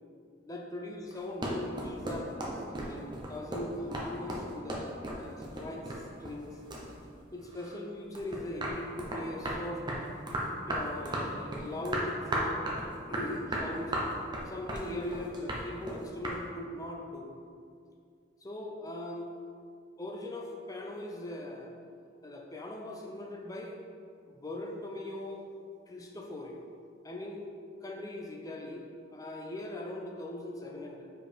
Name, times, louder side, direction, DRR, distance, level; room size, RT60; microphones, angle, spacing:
voice 1, 0.4-5.9 6.2-6.6 7.3-9.8 10.7-12.6 13.0-13.9 14.5-17.3 18.4-19.3 20.0-21.7 22.2-23.8 24.3-25.5 25.9-26.7 27.0-27.5 27.8-31.1, left 1 dB, 20° left, 1 dB, 0.6 m, -40 dB
sound 1, 1.1-6.5 6.7-7.8 8.1-16.4, right 1 dB, 25° right, 0.8 m, -35 dB
5.1 x 4.6 x 5.1 m, 2.3 s
head